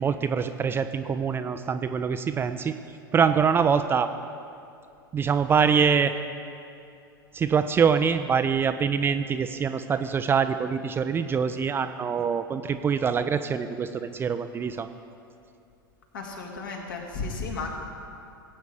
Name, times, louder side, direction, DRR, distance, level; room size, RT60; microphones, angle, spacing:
voice 1, 0.0-2.7 3.1-4.1 5.1-6.1 7.3-14.9, right 6 dB, 20° right, 9 dB, 0.4 m, -24 dB
voice 2, 16.1-17.7, left 4 dB, 60° left, 0 dB, 2.1 m, -34 dB
18.5 x 8.2 x 4.8 m, 2.5 s
figure-of-eight pair, 90°, 12 cm